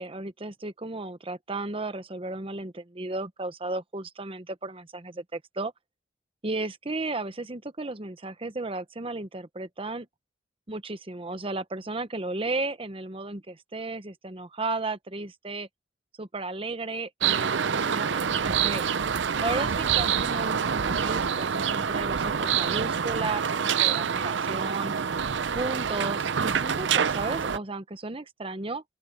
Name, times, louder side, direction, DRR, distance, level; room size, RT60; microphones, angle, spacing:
voice 1, 0.0-5.7 6.4-10.1 10.7-15.7 16.2-18.8 19.4-24.9 25.5-28.8, right 2 dB, 30° right, 1.0 m, -34 dB
sound 1, 17.2-27.6, right 7 dB, 85° right, 0.6 m, -26 dB
open air
head